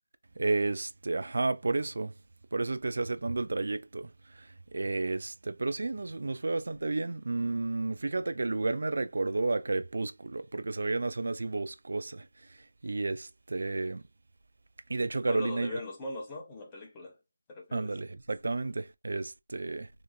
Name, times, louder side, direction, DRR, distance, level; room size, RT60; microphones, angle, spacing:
voice 1, 0.4-2.1 2.5-12.6 12.8-14.0 14.9-15.8 17.7-19.9, right 3 dB, 60° right, 0.3 m, -32 dB
voice 2, 15.3-17.2 17.5-17.9, left 2 dB, 15° left, 0.7 m, -40 dB
2.8 x 2.5 x 2.3 m
figure-of-eight pair, 165°, 0 cm